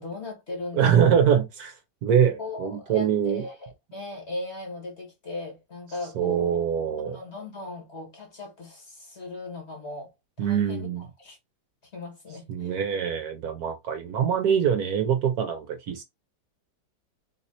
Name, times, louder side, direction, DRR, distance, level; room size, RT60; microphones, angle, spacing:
voice 1, 0.0-1.1 2.4-6.7 7.0-10.1 10.4-11.4 11.9-12.8, left 2 dB, 40° left, 1.7 m, -38 dB
voice 2, 0.7-3.4 6.1-7.2 10.4-11.0 12.5-16.0, right 8 dB, 65° right, 1.1 m, -24 dB
3.8 x 2.8 x 4.2 m
omnidirectional pair, 1.9 m